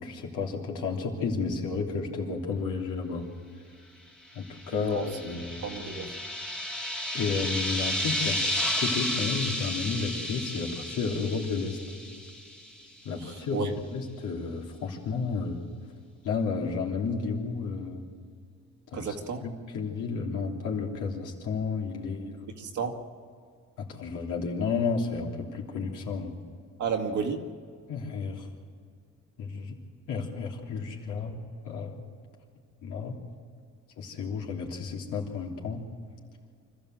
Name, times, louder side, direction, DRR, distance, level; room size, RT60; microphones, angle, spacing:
voice 1, 0.0-3.3 4.3-5.6 7.1-11.8 13.0-15.6 16.2-18.0 18.9-19.1 19.4-22.3 23.8-26.3 27.9-28.5 29.4-29.7 30.1-32.0 32.8-33.2 34.0-35.9, left 4 dB, 90° left, -1 dB, 3.3 m, -32 dB
sound 1, 4.5-12.8, left 1 dB, 5° left, 1.6 m, -32 dB
voice 2, 4.7-5.1 5.6-6.1 13.2-13.7 18.9-19.4 22.6-23.0 26.8-27.4, right 6 dB, 75° right, 3 dB, 2.2 m, -32 dB
25.5 x 14.0 x 7.8 m, 2.1 s
cardioid pair, 90°, 30 cm